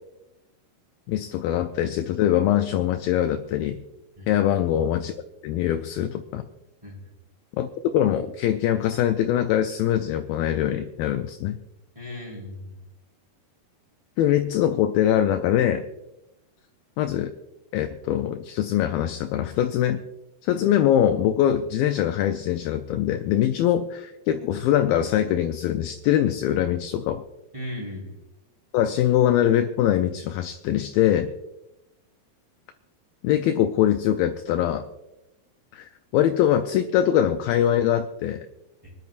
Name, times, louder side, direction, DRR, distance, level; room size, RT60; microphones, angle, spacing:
voice 1, 1.1-3.8 4.3-5.1 5.4-6.4 7.6-11.6 14.2-15.8 17.0-17.3 17.7-20.0 20.4-27.2 28.7-31.3 33.2-34.8 35.7-38.5, left 11 dB, 80° left, 7 dB, 2.1 m, -23 dB
voice 2, 11.9-12.7 27.5-28.2 38.8-38.9, left 1 dB, 10° right, -3 dB, 3.7 m, -37 dB
24.5 x 11.0 x 2.5 m, 0.94 s
omnidirectional pair, 4.7 m